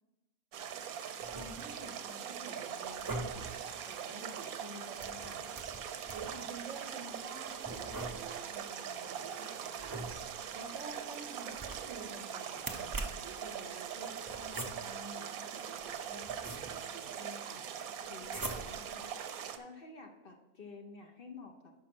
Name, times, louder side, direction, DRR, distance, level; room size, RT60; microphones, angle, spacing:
sound 1, 0.5-19.6, right 8 dB, 85° right, 1.1 m, -42 dB
sound 2, 1.2-1.9 2.9-3.6 5.0-6.5 7.6-8.5 9.8-10.5 11.5-12.1 12.6-13.4 14.3-15.1 15.8-17.0 18.2-19.0, right 2 dB, 20° right, 0.6 m, -43 dB
voice 1, 1.3-3.5 3.8-5.4 6.1-10.1 10.5-12.9 13.2-17.6, right 3 dB, 60° right, 5 dB, 1.2 m, -49 dB
voice 2, 18.1-21.5, left 3 dB, 45° left, 3 dB, 0.9 m, -51 dB
6.1 x 5.9 x 5.9 m, 1.0 s
omnidirectional pair, 1.5 m